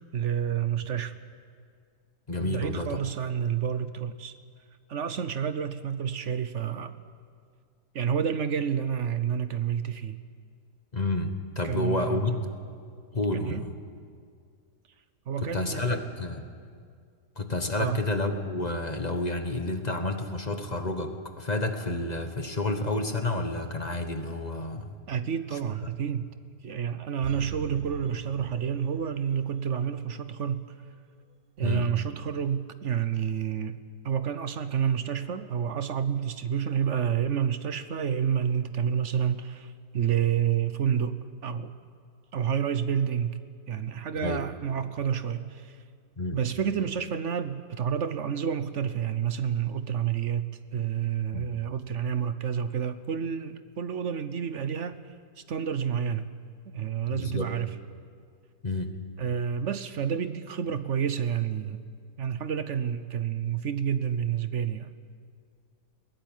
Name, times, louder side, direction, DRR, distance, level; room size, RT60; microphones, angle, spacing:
voice 1, 0.1-1.2 2.4-4.3 4.9-6.9 7.9-10.2 11.6-12.3 13.3-13.6 15.3-16.0 17.8-18.0 25.1-26.3 26.6-30.7 31.6-33.8 34.0-41.7 42.3-43.4 43.7-45.8 46.3-50.4 50.7-55.0 55.5-56.3 56.7-57.7 59.2-61.8 62.2-64.9, right 8 dB, 55° right, 12 dB, 1.0 m, -29 dB
voice 2, 2.3-3.0 10.9-12.4 13.1-13.7 15.4-16.4 17.4-24.9 25.5-25.9 31.6-31.9 44.2-44.4 46.2-46.4 51.3-51.5 57.0-57.5 58.6-58.9, left 2 dB, 25° left, 7 dB, 1.2 m, -30 dB
sound 1, 27.2-29.4 29.7-29.8, right 9 dB, 85° right, 1.5 m, -39 dB
21.5 x 17.0 x 9.3 m, 2.1 s
omnidirectional pair, 1.8 m